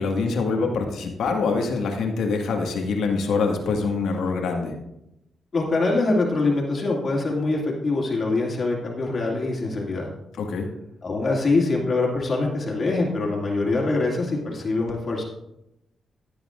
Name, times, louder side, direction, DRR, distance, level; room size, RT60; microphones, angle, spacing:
voice 1, 0.0-4.7 10.4-10.7, left 4 dB, 85° left, 2 dB, 1.7 m, -25 dB
voice 2, 5.5-10.1 11.0-15.2, left 3 dB, 45° left, -2 dB, 2.4 m, -24 dB
15.0 x 8.6 x 2.5 m, 0.85 s
cardioid pair, 95°, 0 cm